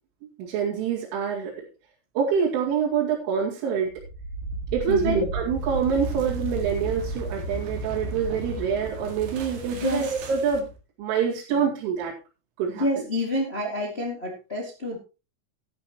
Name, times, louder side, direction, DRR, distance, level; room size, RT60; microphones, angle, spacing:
voice 1, 0.2-1.6 2.2-4.0 4.7-10.7 11.0-12.1 12.6-12.8, right 7 dB, 75° right, -6 dB, 4.7 m, -26 dB
sound 1, 3.9-10.8, right 2 dB, 60° right, 3.6 m, -33 dB
voice 2, 4.9-5.3 9.7-10.1 12.7-15.0, left 1 dB, 50° left, -1 dB, 0.7 m, -28 dB
14.5 x 10.5 x 3.0 m, 0.31 s
omnidirectional pair, 5.7 m